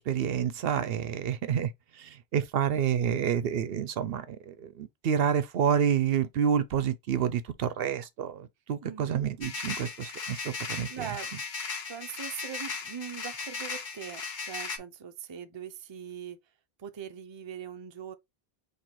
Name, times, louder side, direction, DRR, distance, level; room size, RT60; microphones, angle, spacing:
voice 1, 0.0-11.1, right 8 dB, 70° right, 0.8 m, -29 dB
voice 2, 8.8-9.2 10.9-11.3 11.9-16.4 16.8-18.1, right 8 dB, 35° right, 0.5 m, -41 dB
sound 1, 9.4-14.8, left 5 dB, 50° left, 0.9 m, -37 dB
4.4 x 2.8 x 4.1 m
omnidirectional pair, 1.0 m